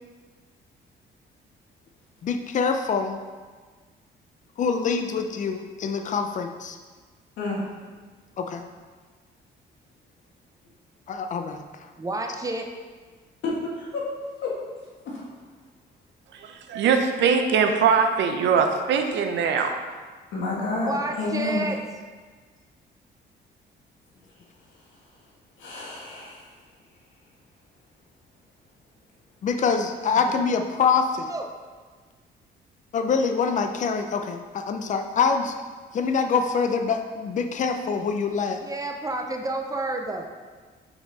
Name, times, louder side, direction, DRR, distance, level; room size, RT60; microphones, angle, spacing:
voice 1, 2.2-3.2 4.6-6.8 8.4-8.6 11.1-11.9 29.4-31.3 32.9-35.6 35.9-38.6, left 5 dB, 40° left, 6 dB, 0.5 m, -25 dB
voice 2, 12.0-12.7 20.8-21.8 31.3-31.5 38.5-40.3, right 2 dB, 20° right, 3 dB, 0.5 m, -30 dB
voice 3, 13.4-14.1 14.4-14.5 15.1-15.2 20.3-21.7 25.6-26.5, left 3 dB, 85° left, -4 dB, 1.7 m, -29 dB
voice 4, 16.4-19.7, right 6 dB, 75° right, 5 dB, 0.6 m, -22 dB
5.8 x 4.1 x 4.0 m, 1.4 s
cardioid pair, 130°, 19 cm